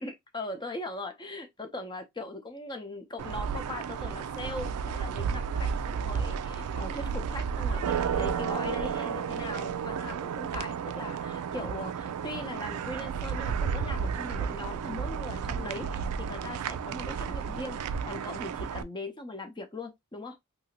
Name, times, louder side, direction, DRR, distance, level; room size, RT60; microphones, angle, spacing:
voice 1, 0.0-20.4, left 2 dB, 20° left, 0.6 m, -40 dB
sound 1, 3.2-18.8, right 6 dB, 85° right, 0.3 m, -32 dB
2.8 x 2.7 x 2.7 m
head